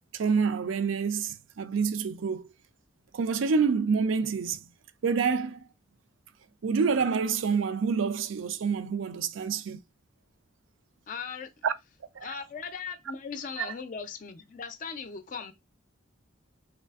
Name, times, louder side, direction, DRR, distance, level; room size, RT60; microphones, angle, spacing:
voice 1, 0.1-2.5 3.1-4.6 5.0-5.6 6.6-9.8 11.6-11.7 12.2-12.3 13.6-13.7, right 5 dB, 75° right, 0.4 m, -27 dB
voice 2, 11.1-11.5 12.2-15.5, left 5 dB, 40° left, 0.4 m, -38 dB
3.5 x 3.2 x 2.3 m
head